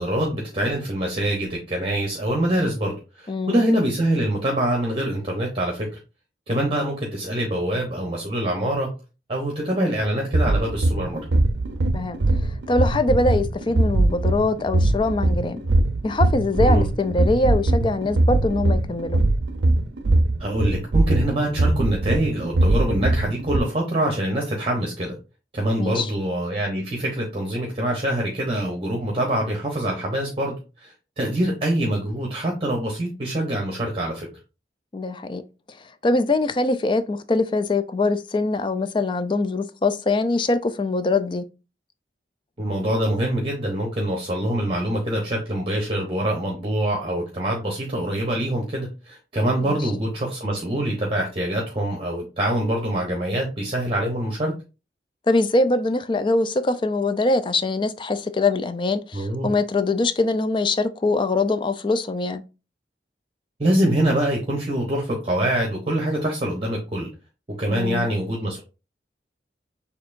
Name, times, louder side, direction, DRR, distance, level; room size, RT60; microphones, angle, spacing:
voice 1, 0.0-5.9 6.5-8.9 9.3-11.2 16.6-16.9 20.4-25.2 25.5-34.3 42.6-54.5 59.1-59.5 63.6-67.1 67.6-68.6, right 1 dB, 30° right, 0.8 m, -24 dB
voice 2, 3.3-3.6 11.9-12.2 12.7-15.6 16.0-19.2 25.8-26.1 34.9-35.4 35.7-41.4 49.6-49.9 55.3-62.4 67.7-68.1, left 2 dB, 30° left, 0.4 m, -23 dB
sound 1, 10.2-23.6, right 2 dB, 85° right, 0.5 m, -21 dB
6.6 x 2.8 x 2.5 m
head